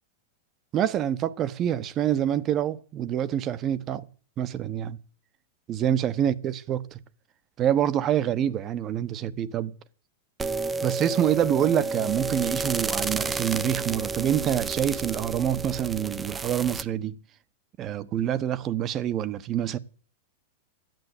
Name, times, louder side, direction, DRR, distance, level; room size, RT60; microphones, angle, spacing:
voice 1, 0.7-4.1 4.4-5.0 5.7-6.8 7.6-9.7 10.8-17.2 17.8-19.8, right 10 dB, 35° right, 1.1 m, -26 dB
sound 1, 10.4-16.8, right 4 dB, 15° right, 0.8 m, -31 dB
13.0 x 9.3 x 8.2 m
hypercardioid pair, 115°, 0 cm